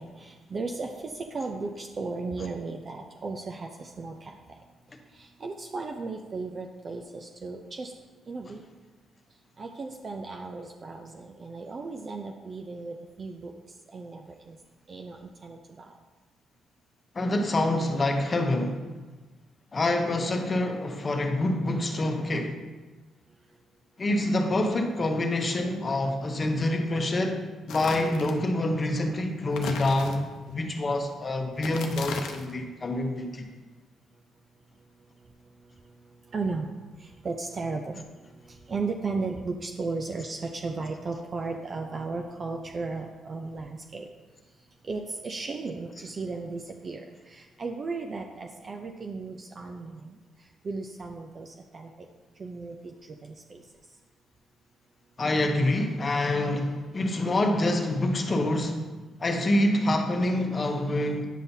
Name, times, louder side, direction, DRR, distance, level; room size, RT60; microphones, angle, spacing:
voice 1, 0.0-4.4 5.1-7.9 8.3-8.6 9.6-13.5 13.9-14.6 14.9-15.9 36.3-38.1 38.5-44.1 44.8-50.2 50.6-51.9 52.4-53.6, right 3 dB, 40° right, 3 dB, 0.5 m, -35 dB
voice 2, 17.1-18.8 19.7-22.6 24.0-27.4 27.7-33.5 55.2-58.9 59.2-61.3, left 1 dB, 35° left, 4 dB, 0.9 m, -26 dB
sound 1, 27.7-28.4 29.5-30.5 31.5-32.6, left 5 dB, 80° left, 0.7 m, -37 dB
9.2 x 5.5 x 2.7 m, 1.2 s
cardioid pair, 90°, 0 cm